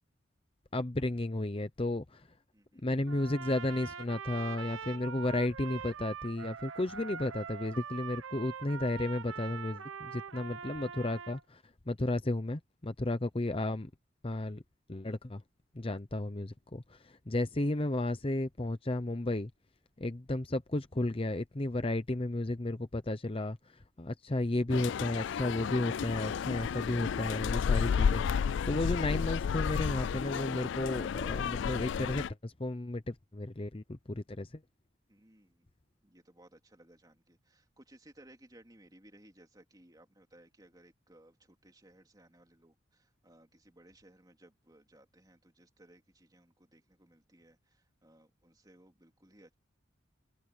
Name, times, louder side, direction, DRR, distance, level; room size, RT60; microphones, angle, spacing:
voice 1, 0.7-2.3 2.8-13.9 14.2-14.6 14.9-15.4 15.7-19.5 20.0-34.6, left 2 dB, 25° left, 0.7 m, -33 dB
voice 2, 2.5-2.8 13.1-13.2 35.1-35.7 36.0-49.5, right 1 dB, 20° right, 3.3 m, -60 dB
Trumpet, 3.1-11.4, right 6 dB, 80° right, 1.1 m, -43 dB
sound 1, 24.7-32.3, left 7 dB, 60° left, 0.3 m, -32 dB
head